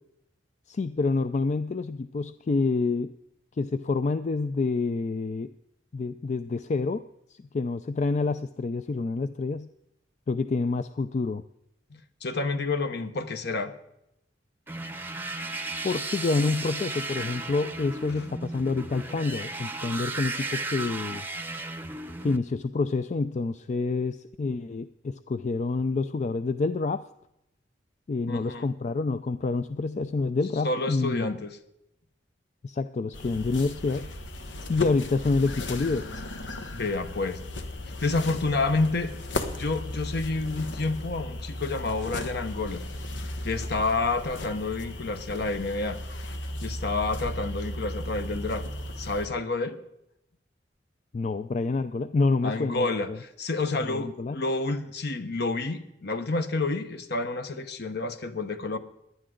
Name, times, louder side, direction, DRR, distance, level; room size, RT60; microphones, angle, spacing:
voice 1, 0.7-3.1 3.6-5.5 5.9-7.0 7.3-9.7 10.3-11.4 15.8-21.3 22.2-27.0 28.1-31.4 32.6-34.1 34.7-36.1 51.1-53.2 53.9-54.4, left 3 dB, 40° left, 12 dB, 0.4 m, -28 dB
voice 2, 11.9-13.7 28.3-28.7 30.6-31.6 36.7-37.4 37.9-39.1 39.5-42.8 43.4-46.0 46.6-48.7 49.0-49.8 52.4-58.8, left 3 dB, 60° left, 9 dB, 1.1 m, -29 dB
sound 1, 14.7-22.4, right 2 dB, 10° right, 0.7 m, -35 dB
sound 2, 33.1-49.3, left 1 dB, 85° left, 1.2 m, -36 dB
17.5 x 11.0 x 3.8 m, 0.82 s
head